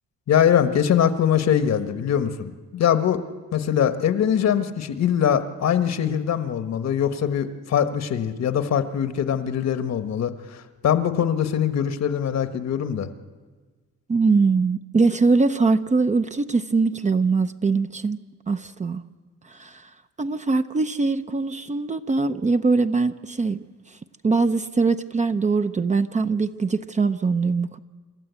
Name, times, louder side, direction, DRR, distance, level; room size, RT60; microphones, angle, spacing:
voice 1, 0.3-3.2 3.5-10.3 10.8-13.1, left 9 dB, 60° left, 10 dB, 1.3 m, -22 dB
voice 2, 14.1-18.2 18.5-19.0 19.5-19.9 20.2-23.6 24.2-27.8, right 4 dB, 25° right, 9 dB, 0.7 m, -22 dB
27.5 x 12.5 x 8.2 m, 1.4 s
cardioid pair, 90°, 30 cm